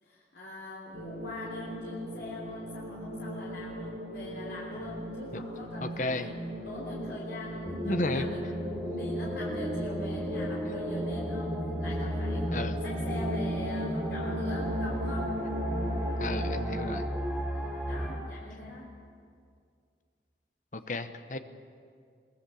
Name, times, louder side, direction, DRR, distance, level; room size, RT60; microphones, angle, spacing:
voice 1, 0.0-8.6 8.9-12.5 12.8-15.4 17.4-18.9, left 2 dB, 75° left, -4 dB, 3.2 m, -43 dB
sound 1, 0.9-16.9, equal, 80° right, 7.6 m, -37 dB
voice 2, 5.8-6.3 7.8-8.3 8.8-9.1 12.5-12.8 16.2-17.1 20.7-21.4, left 2 dB, 45° left, 9 dB, 1.0 m, -33 dB
sound 2, 7.6-18.1, equal, ahead, 2.7 m, -34 dB
22.5 x 19.5 x 7.1 m, 2.2 s
head